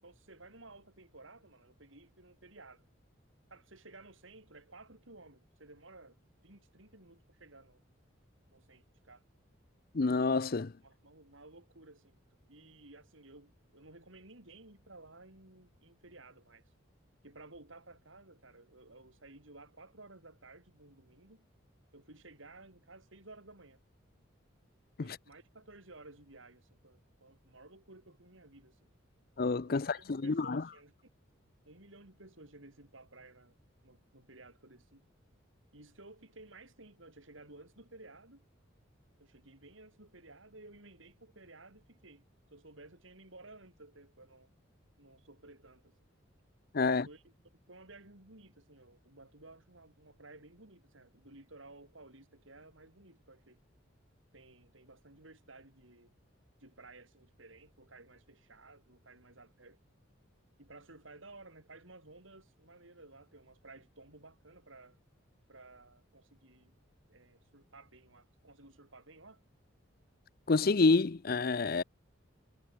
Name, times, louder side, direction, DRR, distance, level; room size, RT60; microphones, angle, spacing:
voice 1, 0.0-2.9 3.5-7.8 8.5-9.2 10.8-12.2 12.5-16.7 17.2-21.5 21.9-23.8 25.0-28.9 29.6-31.1 31.7-33.6 33.8-35.0 35.7-38.4 39.2-42.2 42.5-44.5 45.0-45.9 46.8-53.6 54.3-56.1 56.6-59.8 60.6-65.0 65.5-66.7 67.1-69.4, right 2 dB, 75° right, 5.8 m, -56 dB
voice 2, 9.9-10.7 25.0-25.2 29.4-30.6 46.7-47.1 70.5-71.8, left 3 dB, 50° left, 0.6 m, -28 dB
head